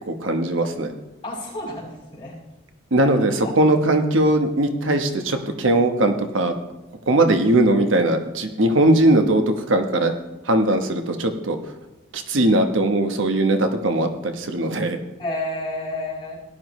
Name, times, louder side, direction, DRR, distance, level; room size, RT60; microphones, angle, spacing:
voice 1, 0.1-0.9 2.9-6.5 7.1-10.1 10.4-11.6 12.1-15.0, right 1 dB, 80° right, 6 dB, 1.1 m, -19 dB
voice 2, 1.2-2.3 3.0-3.1 3.4-3.5 15.2-16.4, left 1 dB, 25° left, -6 dB, 5.1 m, -30 dB
17.5 x 11.0 x 3.2 m, 1.0 s
head